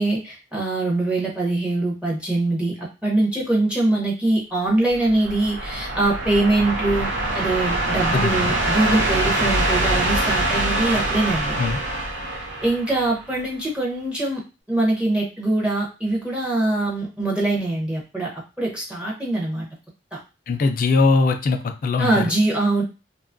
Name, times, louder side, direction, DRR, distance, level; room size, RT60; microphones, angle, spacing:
voice 1, 0.0-7.1 7.3-11.6 12.6-14.4 14.7-19.7 20.1-20.2 22.0-22.8, right 2 dB, 5° right, -4 dB, 0.6 m, -23 dB
sound 1, 4.9-13.4, right 1 dB, 80° right, 0.6 m, -24 dB
voice 2, 8.1-8.5 11.6-11.8 20.5-22.3, left 3 dB, 50° left, 5 dB, 0.3 m, -21 dB
2.8 x 2.3 x 2.5 m, 0.30 s
head